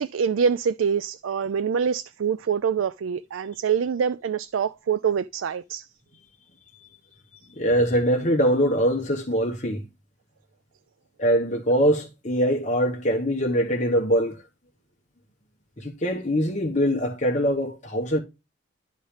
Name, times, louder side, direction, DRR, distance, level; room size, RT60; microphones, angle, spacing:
voice 1, 0.0-5.9, right 7 dB, 80° right, 0.4 m, -25 dB
voice 2, 7.5-9.8 11.2-14.4 15.8-18.2, equal, 35° left, 1.3 m, -23 dB
11.5 x 4.0 x 5.0 m
head